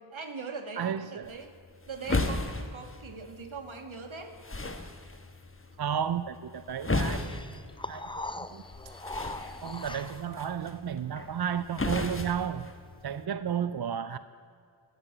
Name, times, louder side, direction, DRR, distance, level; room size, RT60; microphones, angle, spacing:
voice 1, 0.1-1.5 1.9-4.4 13.5-13.7, right 4 dB, 75° right, 6 dB, 1.5 m, -41 dB
voice 2, 0.8-1.4 5.8-7.6 7.9-8.6 9.6-12.7 13.0-14.2, right 8 dB, 55° right, 13 dB, 0.5 m, -33 dB
sound 1, 1.2-13.2, left 2 dB, 25° left, 1.1 m, -36 dB
sound 2, 7.1-10.4, left 2 dB, 10° left, 0.5 m, -40 dB
15.5 x 6.6 x 8.6 m, 2.4 s
wide cardioid pair, 50°, 48 cm